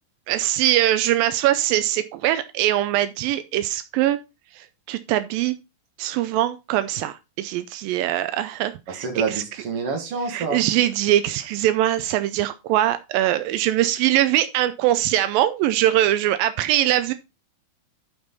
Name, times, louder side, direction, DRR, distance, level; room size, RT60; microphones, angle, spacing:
voice 1, 0.3-4.2 4.6-5.6 6.0-9.1 10.3-17.1, right 13 dB, 85° right, 11 dB, 2.3 m, -22 dB
voice 2, 8.9-10.6, right 4 dB, 45° right, 3 dB, 2.7 m, -27 dB
11.0 x 5.3 x 4.1 m, 0.26 s
omnidirectional pair, 4.0 m